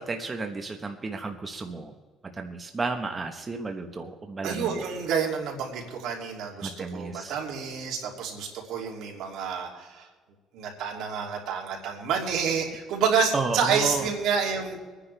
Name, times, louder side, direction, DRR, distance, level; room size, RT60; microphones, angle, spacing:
voice 1, 0.0-1.9 2.3-4.8 6.6-7.3 13.3-14.0, right 3 dB, 25° right, 5 dB, 1.1 m, -32 dB
voice 2, 4.4-10.1 10.5-14.8, right 6 dB, 80° right, 1 dB, 2.8 m, -29 dB
25.0 x 9.9 x 3.4 m, 1.4 s
cardioid pair, 110°, 0 cm